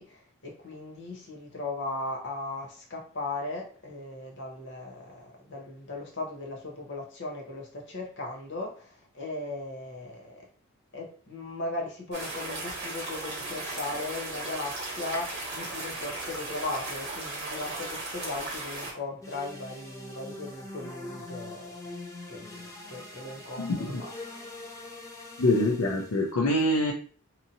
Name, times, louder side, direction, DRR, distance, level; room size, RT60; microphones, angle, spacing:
voice 1, 0.0-10.4 10.9-24.1, left 2 dB, 55° left, 0.8 m, -38 dB
sound 1, 12.1-18.9, right 2 dB, 50° right, 1.0 m, -36 dB
sound 2, 19.2-26.3, left 2 dB, 15° left, 0.5 m, -43 dB
voice 2, 23.6-24.0 25.4-26.9, left 1 dB, 75° left, 0.5 m, -25 dB
2.9 x 2.6 x 2.6 m
head